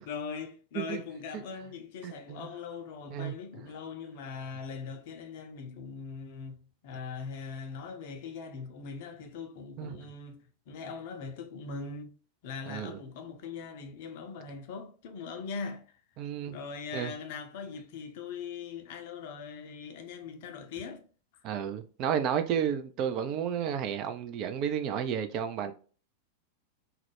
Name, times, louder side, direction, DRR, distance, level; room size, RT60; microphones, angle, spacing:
voice 1, 0.0-12.1 12.4-15.8 16.5-21.0, left 5 dB, 50° left, 0.5 m, -41 dB
voice 2, 2.0-2.5 3.1-3.3 9.8-9.9 12.7-13.0 16.2-16.6 16.9-17.1 21.4-25.7, right 8 dB, 40° right, 0.3 m, -32 dB
2.3 x 2.1 x 3.1 m
figure-of-eight pair, 90°, 0 cm